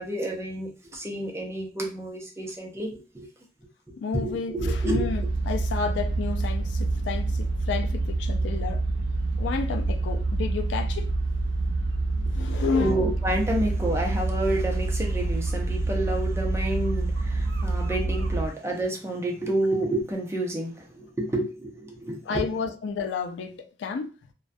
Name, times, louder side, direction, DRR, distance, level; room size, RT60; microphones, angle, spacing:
voice 1, 0.0-3.3 4.1-5.1 12.5-22.5, right 1 dB, 15° right, 0.5 m, -29 dB
voice 2, 4.0-8.8 9.4-11.1 12.3-13.0 17.7-17.8 22.3-24.1, left 5 dB, 80° left, 0.3 m, -31 dB
sound 1, 4.6-18.5, right 2 dB, 80° right, 0.4 m, -27 dB
2.2 x 2.2 x 2.5 m
head